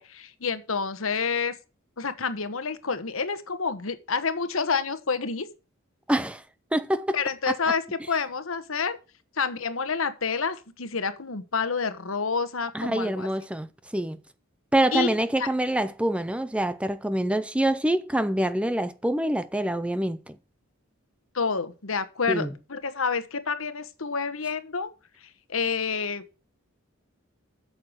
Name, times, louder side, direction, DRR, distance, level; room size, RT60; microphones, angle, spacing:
voice 1, 0.0-1.5 2.0-5.5 7.1-9.0 9.4-13.3 14.9-15.5 21.3-24.9 25.5-26.2, left 5 dB, 75° left, 1.2 m, -28 dB
voice 2, 6.1-6.4 6.7-7.2 7.5-7.6 12.7-14.2 14.7-20.4 22.3-22.5, right 1 dB, 5° right, 0.5 m, -26 dB
8.6 x 6.8 x 6.2 m
head